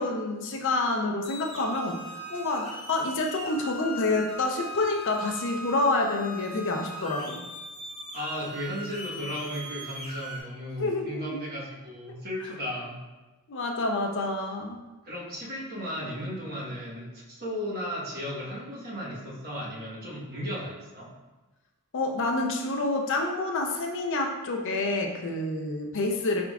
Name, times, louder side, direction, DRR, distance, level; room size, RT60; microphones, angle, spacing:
voice 1, 0.0-2.0 2.3-7.4 10.8-11.4 13.5-14.8 21.9-26.4, left 2 dB, 55° left, 2 dB, 0.5 m, -28 dB
sound 1, 1.2-10.4, left 1 dB, 30° left, 1.0 m, -40 dB
voice 2, 8.1-13.0 15.0-21.1, equal, 45° right, -6 dB, 1.2 m, -35 dB
4.5 x 3.7 x 2.4 m, 1.2 s
head